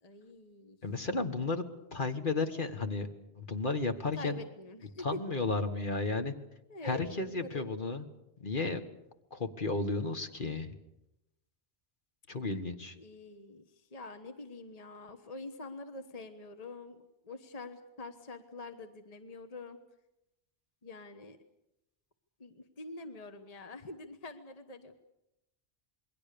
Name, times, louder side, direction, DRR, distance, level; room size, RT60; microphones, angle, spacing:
voice 1, 0.0-0.8 4.1-5.2 6.7-7.7 12.9-17.0 17.2-19.8 20.8-21.4 22.4-25.0, left 2 dB, 40° left, 8 dB, 1.3 m, -45 dB
voice 2, 0.8-1.6 1.9-3.1 3.4-4.4 5.0-6.3 6.8-8.1 8.4-8.8 9.3-10.7 12.3-13.0, left 3 dB, 55° left, 7 dB, 1.7 m, -33 dB
27.5 x 22.0 x 6.8 m, 0.89 s
omnidirectional pair, 1.1 m